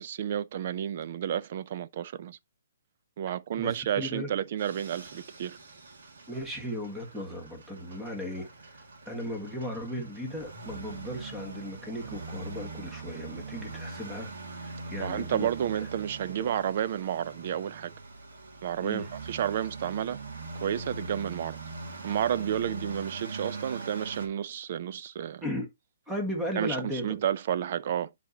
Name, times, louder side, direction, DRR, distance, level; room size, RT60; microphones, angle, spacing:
voice 1, 0.0-2.4 3.2-5.6 15.0-17.9 18.6-20.2 20.6-21.6 22.0-25.4 26.6-26.8 27.0-28.1, right 10 dB, 45° right, 0.5 m, -31 dB
voice 2, 3.6-4.3 6.3-15.5 15.8-15.9 16.4-16.5 18.8-19.1 25.4-25.7 26.1-27.2, equal, 5° right, 1.6 m, -36 dB
sound 1, 4.6-24.3, right 3 dB, 70° right, 2.2 m, -42 dB
10.0 x 4.1 x 2.8 m
hypercardioid pair, 160°, 0 cm